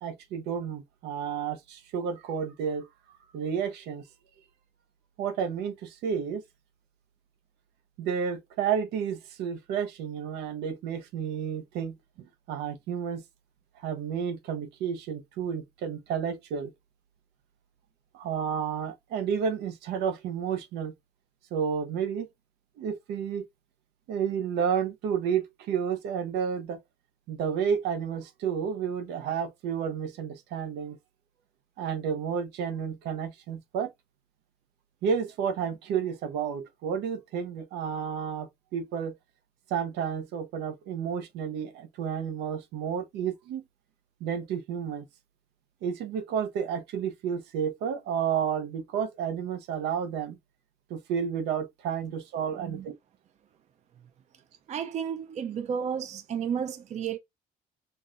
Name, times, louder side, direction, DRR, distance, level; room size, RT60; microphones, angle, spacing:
voice 1, 0.0-2.9 3.3-4.0 5.2-6.4 8.0-11.9 12.5-13.2 13.8-16.7 18.1-20.9 21.5-22.3 22.8-23.4 24.1-26.8 27.3-31.0 31.8-33.9 35.0-39.1 39.7-43.6 44.2-45.0 45.8-50.4 50.9-53.0, right 7 dB, 85° right, 0.8 m, -31 dB
voice 2, 52.5-52.9 54.7-57.2, right 7 dB, 45° right, 0.5 m, -32 dB
5.4 x 2.2 x 2.5 m
cardioid pair, 110°, 17 cm